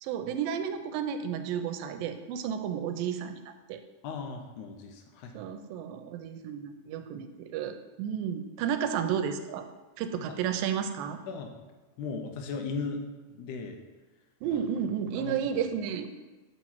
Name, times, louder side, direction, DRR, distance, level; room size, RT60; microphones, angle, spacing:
voice 1, 0.0-3.8 5.3-9.7 10.0-11.2 14.4-16.1, right 8 dB, 85° right, 8 dB, 2.3 m, -32 dB
voice 2, 4.0-5.4 10.3-10.4 11.3-11.6 12.0-13.8 14.5-14.6 15.2-15.6, left 4 dB, 80° left, 4 dB, 2.0 m, -37 dB
8.2 x 3.1 x 5.8 m, 1.2 s
omnidirectional pair, 4.0 m